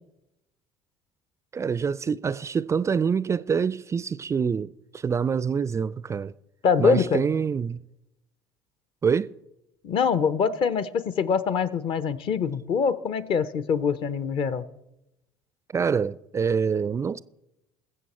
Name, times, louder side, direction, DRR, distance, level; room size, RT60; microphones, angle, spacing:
voice 1, 1.5-6.3 6.8-7.8 9.0-9.3 15.7-17.2, right 6 dB, 25° right, 0.4 m, -26 dB
voice 2, 6.6-7.2 9.8-14.6, left 6 dB, 50° left, 0.8 m, -24 dB
20.5 x 7.6 x 4.3 m
figure-of-eight pair, 60°, 12 cm